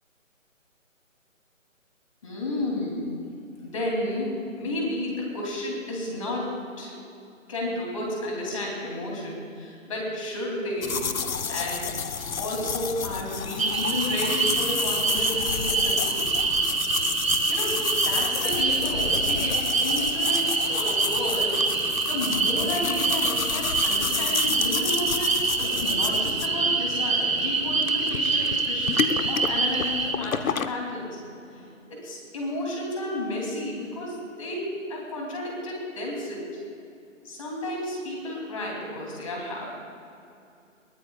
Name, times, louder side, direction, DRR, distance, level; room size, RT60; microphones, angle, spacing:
voice 1, 2.2-3.0 3.6-6.5 6.8-6.9 7.5-11.0 11.5-11.9 12.4-16.2 17.5-31.1 31.5-36.5 37.2-39.8, left 1 dB, 25° left, -2 dB, 3.0 m, -32 dB
sound 1, 10.8-30.7, left 6 dB, 85° left, 1.0 m, -31 dB
sound 2, 13.6-30.1, right 4 dB, 80° right, 2.0 m, -25 dB
22.0 x 18.0 x 2.4 m, 2.6 s
hypercardioid pair, 175°, 40 cm